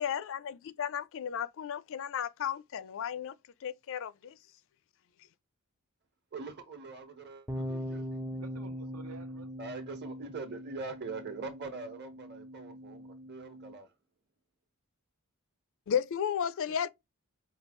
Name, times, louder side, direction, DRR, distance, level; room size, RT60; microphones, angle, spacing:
voice 1, 0.0-3.3 3.6-4.4 15.9-16.9, left 8 dB, 60° left, 0.4 m, -34 dB
voice 2, 6.3-8.2 9.6-13.9, right 4 dB, 50° right, 1.2 m, -43 dB
sound 1, 7.5-13.7, equal, 10° right, 0.5 m, -41 dB
voice 3, 8.3-9.5 16.7-16.9, right 5 dB, 80° right, 1.0 m, -52 dB
5.2 x 2.3 x 3.1 m
head